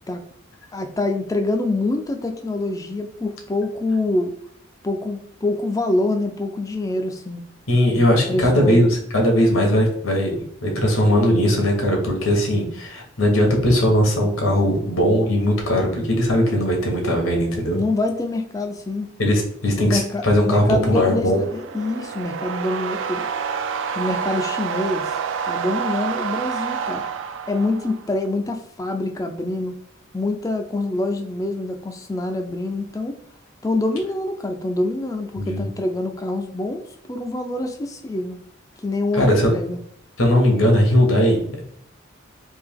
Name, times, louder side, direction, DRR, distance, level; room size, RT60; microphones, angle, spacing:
voice 1, 0.7-4.3 4.8-7.4 8.3-8.8 17.7-19.1 19.8-23.3 24.0-25.1 25.4-27.0 27.5-29.8 30.1-33.2 33.6-38.4 38.8-39.8, left 2 dB, 15° left, 5 dB, 0.3 m, -25 dB
voice 2, 7.7-10.3 10.6-17.8 19.2-21.4 35.4-35.7 39.1-39.5 40.2-41.6, equal, 85° left, 1 dB, 1.2 m, -19 dB
sound 1, 21.1-28.2, right 6 dB, 65° right, 0.3 m, -28 dB
3.4 x 2.8 x 3.5 m, 0.68 s
head